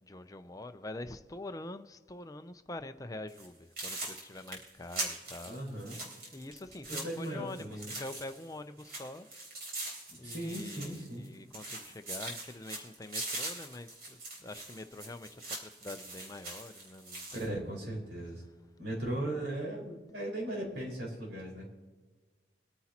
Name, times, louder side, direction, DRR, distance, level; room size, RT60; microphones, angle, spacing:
voice 1, 0.0-5.6 6.3-9.3 10.2-17.6 19.1-19.5, left 2 dB, 20° left, 0.5 m, -45 dB
sound 1, 3.3-3.5 3.8-8.5 8.8-11.3 11.5-17.5, right 2 dB, 55° right, 3.8 m, -42 dB
voice 2, 5.5-6.0 6.9-7.9 10.1-11.2 17.3-18.4 18.8-21.7, right 1 dB, 80° right, 5.0 m, -38 dB
26.0 x 9.9 x 2.9 m
head